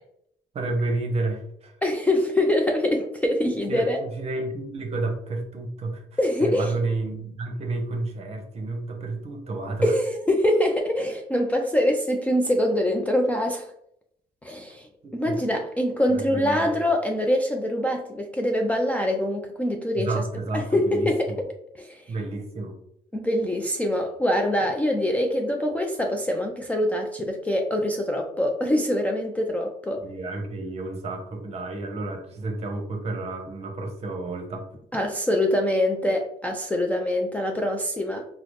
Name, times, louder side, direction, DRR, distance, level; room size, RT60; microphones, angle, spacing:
voice 1, 0.5-1.7 3.7-6.0 6.4-9.9 15.0-15.4 16.1-16.8 20.0-21.4 22.1-22.8 30.0-34.7, right 2 dB, 40° right, 3 dB, 0.8 m, -31 dB
voice 2, 1.8-4.0 6.2-6.7 9.8-13.7 14.4-14.9 15.1-20.1 20.5-21.5 21.7-22.1 23.1-30.0 34.9-38.3, left 1 dB, 10° left, 1 dB, 0.3 m, -24 dB
3.9 x 2.0 x 3.1 m, 0.74 s
cardioid pair, 110°, 17 cm